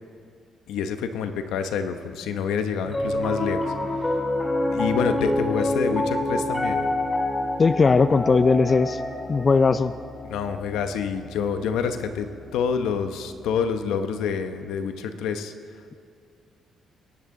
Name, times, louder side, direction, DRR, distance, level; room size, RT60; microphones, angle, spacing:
voice 1, 0.7-3.7 4.0-4.1 4.7-6.8 10.2-15.5, left 6 dB, 85° left, 8 dB, 0.8 m, -27 dB
Piano, 2.8-13.2, left 1 dB, 20° left, 2.0 m, -28 dB
voice 2, 7.6-9.0 9.3-9.9, left 4 dB, 35° left, 12 dB, 0.4 m, -18 dB
21.5 x 10.5 x 3.8 m, 2.5 s
cardioid pair, 90°, 0 cm